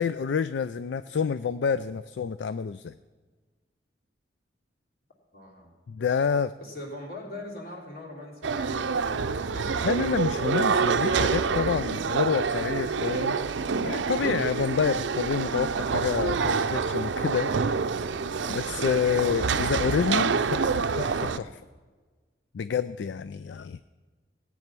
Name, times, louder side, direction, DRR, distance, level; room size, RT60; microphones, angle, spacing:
voice 1, 0.0-2.9 5.9-6.5 9.8-13.4 13.8-17.8 18.5-21.6 22.5-23.8, left 6 dB, 75° left, 14 dB, 0.4 m, -28 dB
voice 2, 5.3-5.7 6.6-10.0 18.4-18.6, left 1 dB, 55° left, -1 dB, 3.3 m, -42 dB
sound 1, 8.4-21.4, right 5 dB, 80° right, 0.5 m, -27 dB
17.0 x 9.3 x 6.0 m, 1.4 s
head